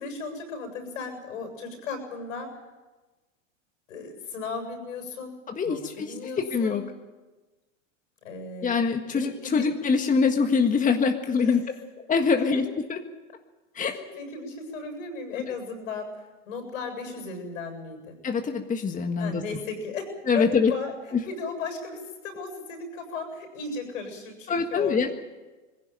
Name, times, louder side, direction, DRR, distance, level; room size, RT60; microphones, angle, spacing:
voice 1, 0.0-2.6 3.9-5.4 5.6-6.9 8.2-8.7 9.1-9.7 11.4-11.6 12.4-12.5 13.9-18.2 19.2-25.1, left 4 dB, 80° left, 5 dB, 7.7 m, -36 dB
voice 2, 5.6-6.1 6.4-6.8 8.6-11.6 12.1-13.0 13.7-14.0 18.2-19.4 20.3-20.7 24.5-25.1, left 5 dB, 20° left, 5 dB, 1.7 m, -24 dB
21.0 x 16.5 x 9.2 m, 1.2 s
hypercardioid pair, 105°, 39 cm